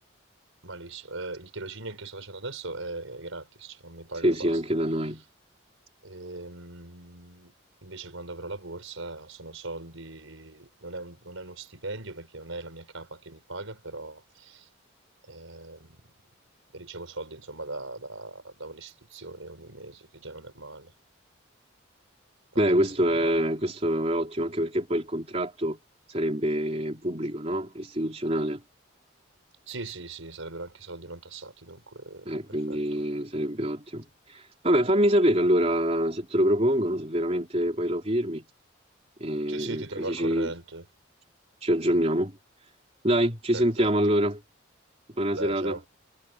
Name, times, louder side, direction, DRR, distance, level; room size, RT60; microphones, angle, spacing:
voice 1, 0.6-4.6 6.0-7.5 7.8-14.7 15.2-16.1 16.7-20.9 22.5-23.5 29.7-33.0 39.5-40.9 43.5-43.9 45.3-45.8, right 2 dB, 85° right, 5.4 m, -40 dB
voice 2, 4.2-5.2 22.6-25.8 26.1-28.6 32.3-38.4 39.2-39.8 40.1-40.5 41.6-42.4 43.0-44.4 45.2-45.8, equal, 30° right, 3.6 m, -25 dB
head